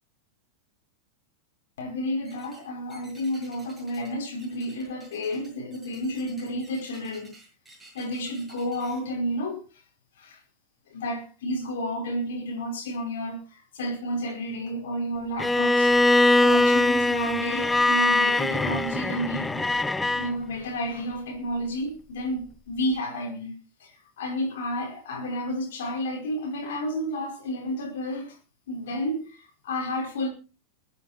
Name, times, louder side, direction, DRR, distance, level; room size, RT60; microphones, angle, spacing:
voice 1, 1.8-7.3 7.9-9.8 10.2-10.4 10.9-15.9 16.4-19.6 20.2-23.5 23.8-28.4 28.7-30.3, equal, 60° left, 5.0 m, -31 dB
flamingo glass, 2.2-2.6 2.9-4.1 4.4-9.0, right 2 dB, 10° right, 6.8 m, -52 dB
Bowed string instrument, 15.4-20.3, left 2 dB, 10° left, 0.6 m, -22 dB
21.0 x 9.4 x 4.3 m
figure-of-eight pair, 90°, 0 cm